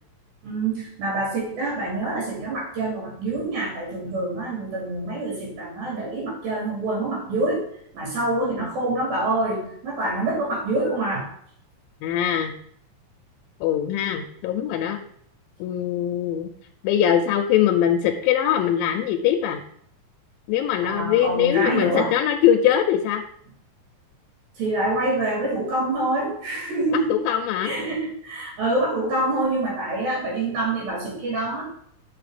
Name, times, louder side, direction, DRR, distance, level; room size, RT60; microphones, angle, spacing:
voice 1, 0.4-7.7 7.9-11.3 20.8-22.1 24.6-27.2 27.6-31.6, right 2 dB, 90° right, -3 dB, 4.8 m, -26 dB
voice 2, 12.0-12.5 13.6-15.0 15.6-16.5 16.8-19.6 20.5-23.2 27.1-27.7, left 10 dB, 90° left, 3 dB, 2.3 m, -22 dB
7.8 x 5.2 x 4.9 m, 0.64 s
omnidirectional pair, 4.1 m